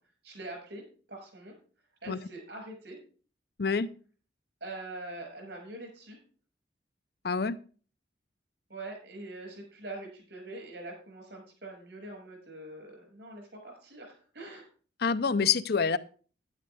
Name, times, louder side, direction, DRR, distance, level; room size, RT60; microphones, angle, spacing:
voice 1, 0.2-1.5 2.0-3.0 4.6-6.2 8.7-14.7, right 2 dB, 70° right, 6.1 m, -44 dB
voice 2, 7.2-7.6 15.0-16.0, left 5 dB, 55° left, 0.6 m, -26 dB
12.0 x 10.5 x 3.5 m
head